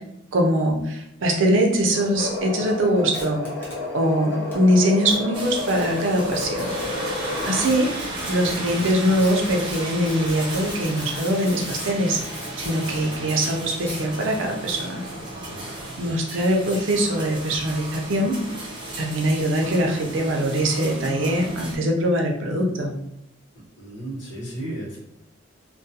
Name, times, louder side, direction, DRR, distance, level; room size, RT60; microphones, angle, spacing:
voice 1, 0.3-3.4 3.9-6.7 7.5-15.0 16.0-18.4 19.0-22.9, equal, 80° right, 1 dB, 0.5 m, -22 dB
sound 1, 1.9-7.7, left 2 dB, 60° left, 0.7 m, -31 dB
sound 2, 3.1-3.7 4.5-4.6 5.1-5.2 5.8-5.9 6.3-6.5 6.8-6.9 7.4-13.6 13.9-14.4 15.3-15.8, left 1 dB, 10° left, 0.8 m, -38 dB
sound 3, 5.3-21.7, right 1 dB, 25° right, 0.6 m, -34 dB
voice 2, 15.5-16.1 23.8-25.0, right 1 dB, 80° left, -5 dB, 1.0 m, -35 dB
2.3 x 2.2 x 2.7 m, 0.80 s
head